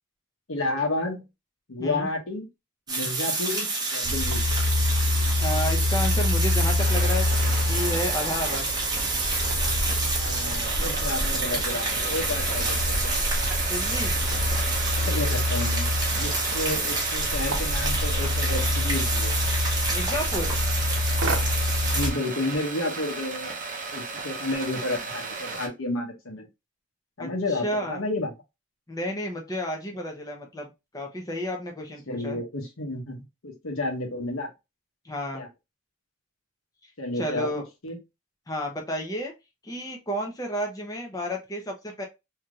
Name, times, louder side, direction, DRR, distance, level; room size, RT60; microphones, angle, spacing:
voice 1, 0.5-1.2 1.7-2.5 2.9-4.4 10.2-13.1 14.9-19.3 21.9-23.6 23.9-26.5 27.2-28.3 32.1-33.2 33.4-34.5 35.3-35.5 37.0-38.0, left 2 dB, 90° left, 2 dB, 1.0 m, -31 dB
sound 1, 2.9-22.1, right 3 dB, 20° right, 0.9 m, -29 dB
sound 2, 4.0-22.1, left 2 dB, 70° right, 0.8 m, -27 dB
voice 2, 5.4-7.3 7.6-8.7 13.6-14.1 19.9-20.5 27.2-28.0 28.9-32.4 35.0-35.4 37.1-37.6 38.5-39.3 39.6-42.0, equal, 15° left, 1 dB, 0.7 m, -31 dB
sound 3, 6.8-25.7, right 3 dB, 40° right, 0.6 m, -35 dB
3.4 x 2.8 x 2.3 m, 0.23 s
head